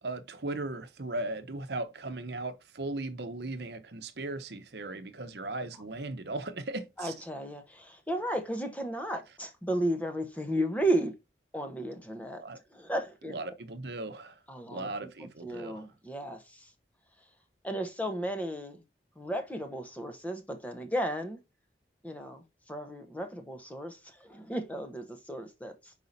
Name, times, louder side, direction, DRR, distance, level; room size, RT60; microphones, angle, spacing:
voice 1, 0.0-7.1 12.4-12.6 13.3-15.9, right 2 dB, 70° right, 0.9 m, -37 dB
voice 2, 7.0-11.1 11.5-12.4 12.7-13.4 14.5-14.9 15.2-16.7 17.6-18.8 19.2-21.4 22.0-25.9, right 1 dB, 10° left, 0.9 m, -34 dB
5.5 x 4.8 x 4.1 m
head